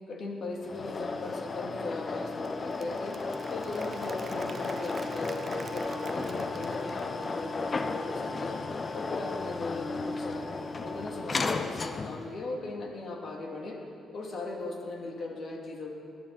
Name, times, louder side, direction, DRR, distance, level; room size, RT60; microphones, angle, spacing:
voice 1, 0.1-3.2 3.5-8.6 8.9-10.5 10.8-13.8 14.1-15.9, left 2 dB, 55° left, -1 dB, 2.8 m, -38 dB
sound 1, 0.6-12.3, left 3 dB, 35° left, 0.7 m, -34 dB
Applause / Crowd, 2.2-7.6, right 5 dB, 40° right, 0.6 m, -48 dB
20.0 x 10.5 x 4.3 m, 2.5 s
cardioid pair, 90°, 0 cm